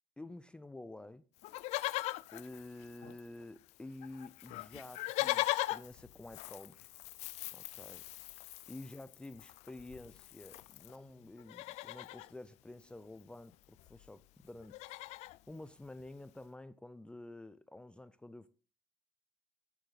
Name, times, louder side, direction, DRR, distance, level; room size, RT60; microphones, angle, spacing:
voice 1, 0.2-1.2 2.3-6.8 7.5-8.1 8.7-15.0 15.5-18.5, left 2 dB, 10° left, 0.5 m, -50 dB
Livestock farm animals working animals, 1.4-3.4 3.7-3.8 4.0-11.0 11.4-12.3 13.5-13.6 13.8-14.1 14.4-15.4 16.0-16.1, left 18 dB, 90° left, 0.4 m, -40 dB
12.5 x 9.8 x 4.1 m
cardioid pair, 125°, 11 cm